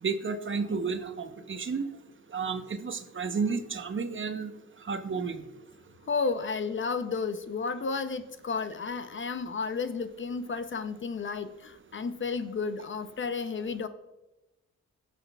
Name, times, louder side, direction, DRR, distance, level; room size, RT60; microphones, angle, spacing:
voice 1, 0.0-1.9 2.3-4.5 4.8-5.4, right 5 dB, 40° right, 9 dB, 0.9 m, -32 dB
voice 2, 6.1-13.9, left 4 dB, 40° left, 11 dB, 0.6 m, -32 dB
17.0 x 5.9 x 2.3 m, 1.0 s
cardioid pair, 60°, 30 cm